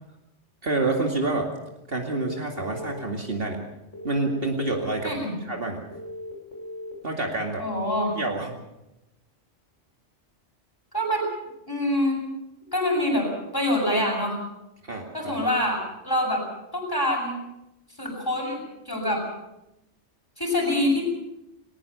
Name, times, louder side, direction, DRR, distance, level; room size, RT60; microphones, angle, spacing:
voice 1, 0.6-1.5 1.9-3.6 4.0-5.8 7.0-7.6 8.1-8.5 14.8-15.1, right 2 dB, 55° right, 2 dB, 2.6 m, -27 dB
sound 1, 2.0-3.0 3.9-4.9 5.9-6.9, left 1 dB, 80° left, 6.3 m, -38 dB
voice 2, 5.0-5.4 7.6-8.1 10.9-11.2 11.7-12.2 12.7-13.3 13.5-14.4 15.1-16.4 16.7-17.4 18.0-18.6 18.9-19.2 20.4-21.0, left 1 dB, 20° left, -1 dB, 7.2 m, -25 dB
21.0 x 19.0 x 6.9 m, 0.90 s
omnidirectional pair, 1.2 m